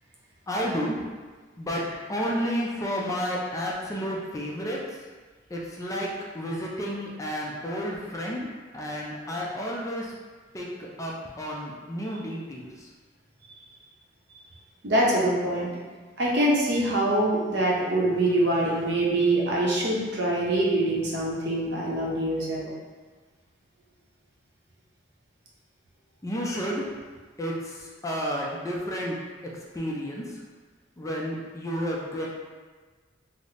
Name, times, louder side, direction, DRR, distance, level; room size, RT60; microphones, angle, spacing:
voice 1, 0.5-1.0 1.6-5.0 5.5-8.4 8.7-10.1 10.5-12.9 26.2-26.9 27.4-29.2 29.7-30.4 31.0-32.3, equal, 20° left, -3 dB, 0.4 m, -31 dB
voice 2, 14.8-15.7 16.2-22.6, right 1 dB, 65° right, -4 dB, 0.7 m, -24 dB
3.8 x 2.0 x 3.2 m, 1.4 s
head